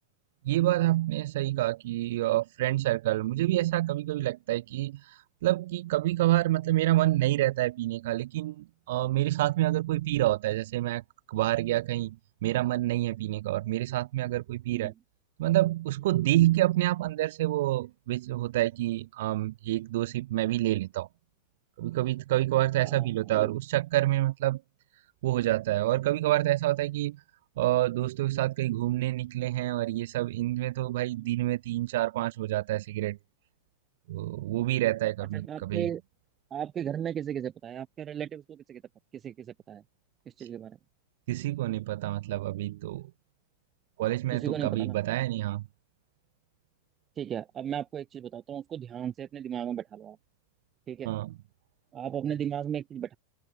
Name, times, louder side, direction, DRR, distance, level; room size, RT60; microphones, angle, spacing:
voice 1, 0.4-11.0 11.3-12.2 12.4-14.9 15.4-21.1 21.8-24.6 25.2-27.2 27.6-33.2 34.1-35.9 40.4-40.5 41.3-43.1 44.0-45.6 51.1-51.3, right 16 dB, 55° right, 2.0 m, -27 dB
voice 2, 22.8-23.5 31.2-31.3 35.3-36.0 36.5-38.8 39.2-39.8 40.4-40.8 44.3-45.0 47.2-50.2 50.9-51.1 51.9-53.2, right 9 dB, 25° right, 4.1 m, -35 dB
open air
figure-of-eight pair, 90°, 0 cm